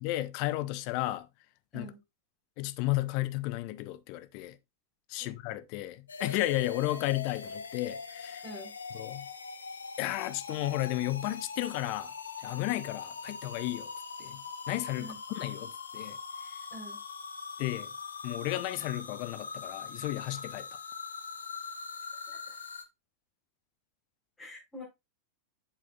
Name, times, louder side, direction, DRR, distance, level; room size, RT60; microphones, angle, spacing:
voice 1, 0.0-1.3 1.7-1.9 2.6-4.6 5.1-8.4 8.9-9.3 10.0-12.1 12.4-13.9 14.2-14.4 14.7-15.1 15.4-16.2 17.6-17.9 18.2-20.7, left 17 dB, 45° left, 0.6 m, -33 dB
sound 1, 6.1-22.8, left 5 dB, 70° left, 0.8 m, -42 dB
voice 2, 24.4-24.8, equal, 15° left, 4.5 m, -45 dB
7.6 x 7.0 x 2.4 m
figure-of-eight pair, 90°, 0 cm